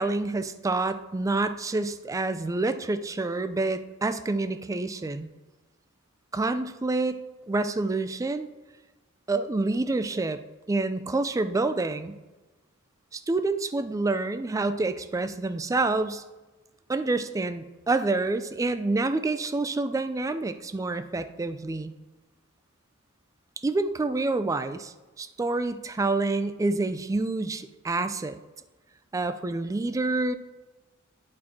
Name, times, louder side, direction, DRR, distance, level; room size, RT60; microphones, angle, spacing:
voice 1, 0.0-5.3 6.3-7.2 7.5-8.5 9.3-10.4 10.7-12.2 13.1-16.2 16.9-21.9 23.6-28.4 29.1-30.4, right 3 dB, 15° right, 11 dB, 0.3 m, -27 dB
8.7 x 4.3 x 4.1 m, 1.2 s
head